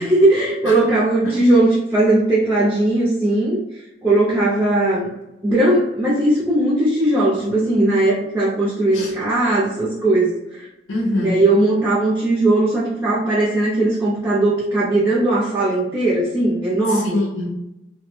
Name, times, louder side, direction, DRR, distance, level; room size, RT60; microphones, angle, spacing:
voice 1, 0.0-3.6 4.0-5.1 5.4-10.7 11.2-17.2, right 2 dB, 10° right, -7 dB, 0.4 m, -18 dB
voice 2, 10.9-11.5 16.9-17.7, left 1 dB, 85° left, -2 dB, 0.5 m, -24 dB
2.2 x 2.0 x 2.9 m, 0.93 s
head